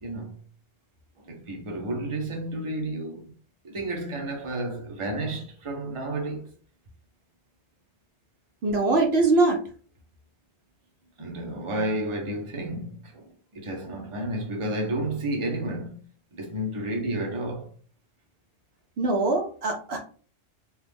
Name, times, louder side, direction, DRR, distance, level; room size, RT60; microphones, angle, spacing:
voice 1, 0.0-0.3 1.2-3.3 3.6-6.5 11.2-16.0 16.3-17.7, right 1 dB, 30° right, 0.7 m, -31 dB
voice 2, 8.6-9.6 19.0-20.0, right 3 dB, 65° right, 0.9 m, -22 dB
2.9 x 2.4 x 3.4 m
omnidirectional pair, 1.2 m